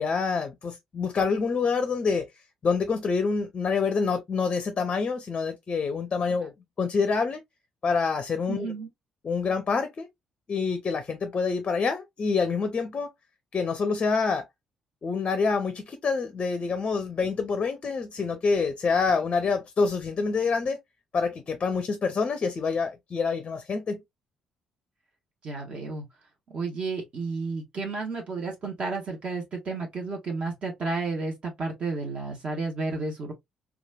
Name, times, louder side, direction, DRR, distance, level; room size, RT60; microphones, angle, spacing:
voice 1, 0.0-2.3 2.6-6.5 6.8-7.4 7.8-8.7 9.2-10.1 10.5-13.1 13.5-14.4 15.0-20.8 21.1-24.0, left 5 dB, 40° left, 0.5 m, -26 dB
voice 2, 8.5-8.9 25.4-26.1 26.5-33.3, right 3 dB, 50° right, 1.0 m, -32 dB
3.0 x 2.3 x 2.3 m
figure-of-eight pair, 40°, 3 cm